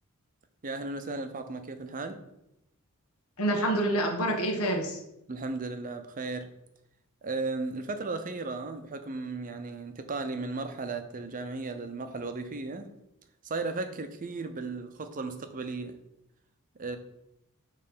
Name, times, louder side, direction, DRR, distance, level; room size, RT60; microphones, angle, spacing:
voice 1, 0.6-2.2 5.3-6.5 7.2-12.9 13.4-16.0 16.8-17.0, right 3 dB, 40° right, 8 dB, 0.6 m, -35 dB
voice 2, 3.4-5.0, right 1 dB, 75° left, 2 dB, 1.2 m, -27 dB
6.5 x 3.2 x 5.5 m, 0.85 s
head